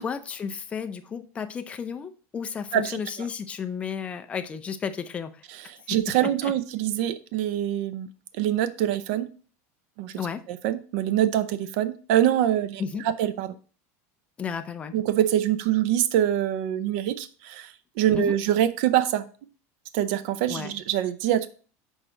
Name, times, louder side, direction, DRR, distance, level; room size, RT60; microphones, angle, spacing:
voice 1, 0.0-5.4 5.9-6.0 6.4-6.5 10.2-10.4 12.8-13.1 14.4-15.0 18.1-18.3 20.5-20.7, left 6 dB, 15° left, 8 dB, 0.5 m, -33 dB
voice 2, 5.5-8.1 8.4-9.3 10.0-10.1 10.5-13.5 14.9-19.2 19.9-21.5, right 11 dB, 55° right, 13 dB, 0.6 m, -25 dB
6.3 x 4.5 x 3.8 m, 0.39 s
supercardioid pair, 165°, 8 cm